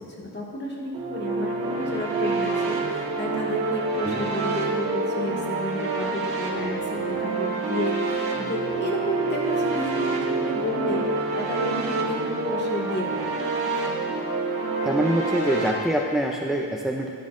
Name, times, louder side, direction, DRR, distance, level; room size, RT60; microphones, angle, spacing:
voice 1, 0.0-13.2, left 1 dB, 30° left, -3 dB, 1.7 m, -31 dB
sound 1, 0.9-15.7, right 3 dB, 75° right, 1.6 m, -27 dB
voice 2, 14.8-17.1, right 1 dB, ahead, 0 dB, 0.4 m, -25 dB
12.5 x 11.5 x 2.5 m, 2.1 s
wide cardioid pair, 170°, 37 cm